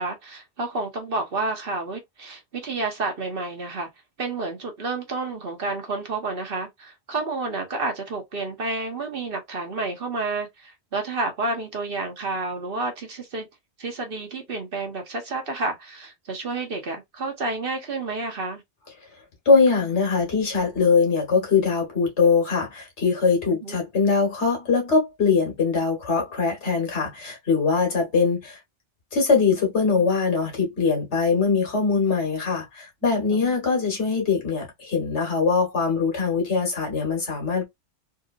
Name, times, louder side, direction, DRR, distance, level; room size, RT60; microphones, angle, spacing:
voice 1, 0.0-3.9 4.2-13.5 13.8-18.6 23.5-23.8 33.3-33.5, right 3 dB, 55° right, 1.1 m, -30 dB
voice 2, 19.5-28.6 29.1-37.7, left 5 dB, 80° left, 1.7 m, -22 dB
3.7 x 2.6 x 2.5 m
omnidirectional pair, 1.2 m